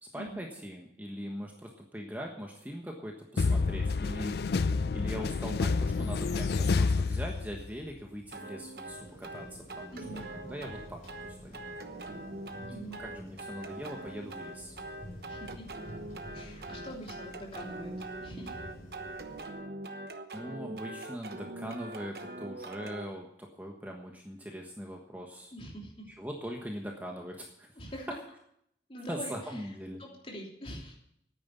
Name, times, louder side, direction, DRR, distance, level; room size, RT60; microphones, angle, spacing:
voice 1, 0.0-4.4 4.9-9.5 9.7-11.6 13.0-14.7 20.3-25.5 26.1-27.7 29.1-30.0, equal, 10° right, 0 dB, 1.3 m, -41 dB
sound 1, 3.4-7.8, left 4 dB, 65° left, 0.4 m, -28 dB
sound 2, 8.3-23.1, right 2 dB, 60° right, 1.1 m, -43 dB
sound 3, 8.9-19.5, equal, 45° left, 4.1 m, -49 dB
voice 2, 9.9-10.3 12.7-13.0 15.3-15.7 16.3-18.6 25.5-26.1 27.8-28.1 28.9-29.7 30.0-31.0, equal, 30° left, -1 dB, 3.1 m, -44 dB
9.7 x 9.3 x 9.6 m, 0.72 s
head